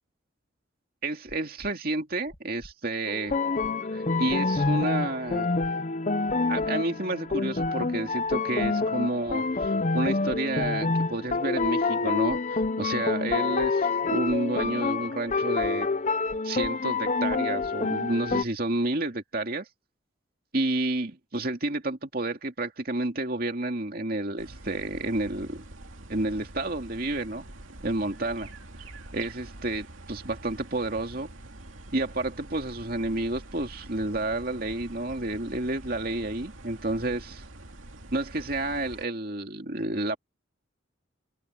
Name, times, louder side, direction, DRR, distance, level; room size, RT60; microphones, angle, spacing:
voice 1, 1.0-3.3 3.9-5.5 6.5-13.7 14.0-15.9 16.4-19.7 20.5-25.7 26.1-27.4 27.8-28.5 28.8-28.9 29.1-31.3 31.9-37.5 38.1-40.2, right 2 dB, 50° right, 2.5 m, -30 dB
sound 1, 1.3-1.7 2.3-2.7 3.3-3.7 4.3-4.7 5.3-5.7 6.3-6.7 7.3-7.7 8.3-8.7 9.3-9.7 10.3-10.7 11.3-11.7 12.3-12.7 13.3-13.7 14.3-14.7 15.3-15.7 16.3-16.7 17.3-17.7 18.3-18.6, equal, 65° left, 2.7 m, -47 dB
sound 2, 3.1-18.4, left 3 dB, 35° left, 0.6 m, -27 dB
sound 3, 24.4-39.1, right 1 dB, 85° right, 2.6 m, -45 dB
head